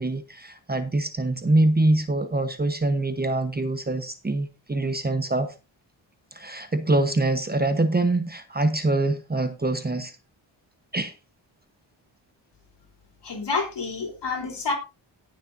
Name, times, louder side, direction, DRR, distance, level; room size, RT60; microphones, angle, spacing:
voice 1, 0.0-5.5 6.3-10.1 10.9-11.1, right 2 dB, 20° right, 1.0 m, -24 dB
voice 2, 13.2-14.7, left 4 dB, 60° left, 3.7 m, -28 dB
18.0 x 6.5 x 2.6 m
wide cardioid pair, 105°, 46 cm